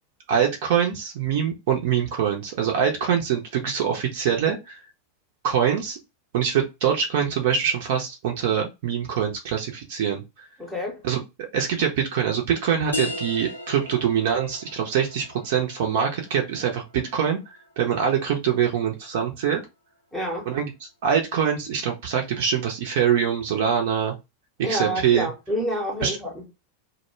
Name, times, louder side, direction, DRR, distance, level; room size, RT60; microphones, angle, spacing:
voice 1, 0.3-4.8 5.4-6.0 6.3-10.5 11.0-19.6 20.5-24.1 24.6-25.3 26.0-26.2, right 8 dB, 50° right, 0.5 m, -24 dB
voice 2, 10.6-11.0 20.1-20.5 24.6-26.5, equal, 5° left, 0.8 m, -28 dB
sound 1, 12.9-18.3, left 2 dB, 80° left, 0.5 m, -37 dB
2.1 x 2.1 x 3.0 m
figure-of-eight pair, 90°, 0 cm